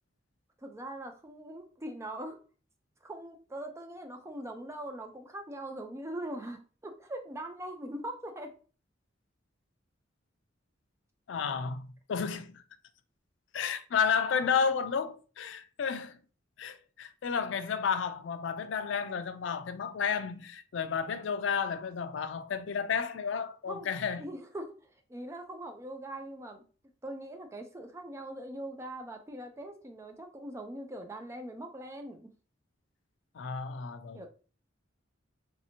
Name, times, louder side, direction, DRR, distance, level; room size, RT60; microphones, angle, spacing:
voice 1, 0.6-2.4 3.0-8.5 23.7-23.9 24.2-26.6 27.0-32.3 34.1-34.3, right 1 dB, 15° right, 0.4 m, -41 dB
voice 2, 11.3-12.6 13.5-16.2 16.6-24.3 33.3-34.3, left 6 dB, 70° left, 0.4 m, -32 dB
3.2 x 2.8 x 2.7 m
head